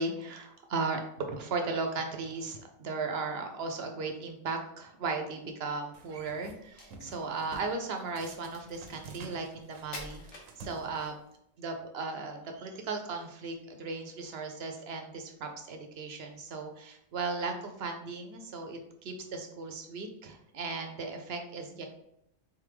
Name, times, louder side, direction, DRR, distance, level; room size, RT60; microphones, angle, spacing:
voice 1, 0.0-11.1 11.6-21.9, right 3 dB, 60° right, 4 dB, 0.8 m, -36 dB
sound 1, 5.9-6.6 6.9-7.7 8.2-11.4, right 3 dB, 85° right, 1.0 m, -50 dB
Crack, 6.6-11.2, left 2 dB, 65° left, 1.2 m, -49 dB
3.7 x 3.5 x 3.3 m, 0.76 s
omnidirectional pair, 1.3 m